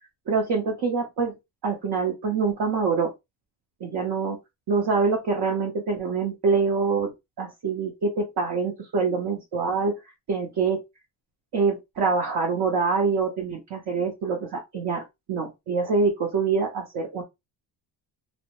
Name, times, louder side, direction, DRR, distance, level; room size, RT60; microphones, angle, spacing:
voice 1, 0.3-1.3 1.6-3.1 3.8-4.4 4.7-7.1 7.4-10.0 10.3-10.8 11.5-17.2, right 4 dB, 55° right, 0.7 m, -25 dB
2.1 x 2.1 x 2.8 m
cardioid pair, 125°, 47 cm